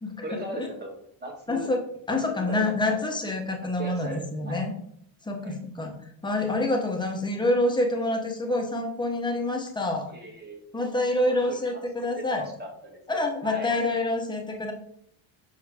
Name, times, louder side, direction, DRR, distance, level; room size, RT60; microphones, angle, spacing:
voice 1, 0.2-0.9 1.2-1.7 2.1-3.1 3.6-4.7 5.4-5.6 10.1-10.7 11.1-11.8 12.2-13.7, right 1 dB, 20° right, 1 dB, 1.4 m, -38 dB
voice 2, 1.5-1.8 2.1-4.7 5.2-5.9 6.2-10.1 10.7-12.5 13.1-14.7, left 2 dB, 10° left, 2 dB, 0.8 m, -27 dB
6.9 x 5.4 x 3.5 m, 0.67 s
cardioid pair, 170°, 50 cm